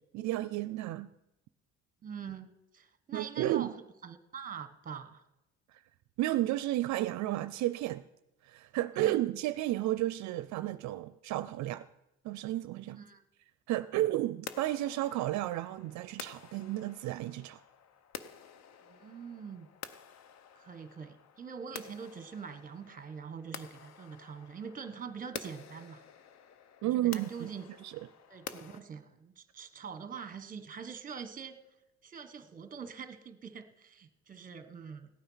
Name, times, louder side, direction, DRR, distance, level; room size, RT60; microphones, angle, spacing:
voice 1, 0.1-1.1 3.1-3.7 5.7-5.8 6.2-8.0 8.4-11.9 12.2-13.0 13.7-17.6 26.8-27.3 27.8-28.0, right 15 dB, 70° right, 0.5 m, -32 dB
voice 2, 2.0-3.7 4.0-5.2 8.9-9.2 12.9-13.2 18.8-19.7 20.5-26.0 26.8-27.7 28.3-31.5 32.0-35.1, right 6 dB, 25° right, 1.2 m, -44 dB
sound 1, 14.5-28.8, left 8 dB, 60° left, 0.9 m, -49 dB
16.5 x 9.1 x 5.6 m
cardioid pair, 135°, 30 cm